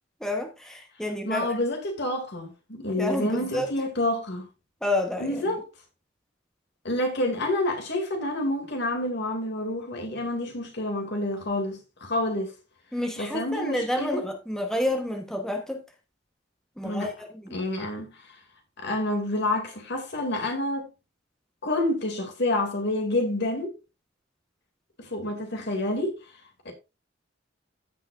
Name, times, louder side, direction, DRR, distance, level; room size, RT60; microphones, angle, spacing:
voice 1, 0.2-1.6 3.0-3.7 4.8-5.4 12.9-15.8 16.8-17.6, left 1 dB, 5° left, 1.1 m, -29 dB
voice 2, 1.3-4.5 5.2-5.6 6.8-12.5 13.2-14.2 16.8-17.1 17.5-18.2 18.8-20.9 21.6-23.8 25.0-26.2 26.6-26.7, left 1 dB, 60° left, 2.4 m, -28 dB
15.0 x 5.8 x 2.5 m
head